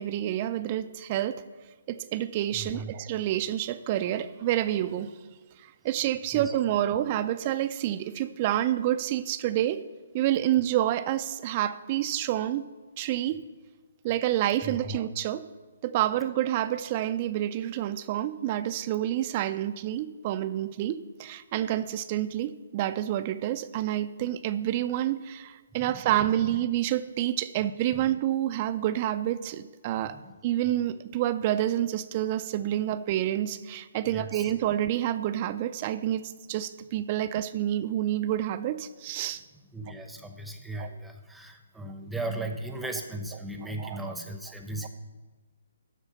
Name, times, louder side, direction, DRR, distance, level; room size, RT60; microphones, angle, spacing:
voice 1, 0.0-1.4 1.9-5.1 5.6-9.9 10.1-12.7 13.0-13.4 14.0-15.5 15.8-39.4 40.8-40.9 43.8-44.0, right 12 dB, 30° right, 12 dB, 0.4 m, -28 dB
voice 2, 2.5-2.9 6.3-6.5 14.6-15.0 25.7-26.0 27.9-28.0 30.1-30.3 34.0-34.5 39.7-44.9, right 2 dB, 5° right, 5 dB, 0.8 m, -37 dB
12.5 x 4.5 x 6.8 m, 1.3 s
hypercardioid pair, 150°, 0 cm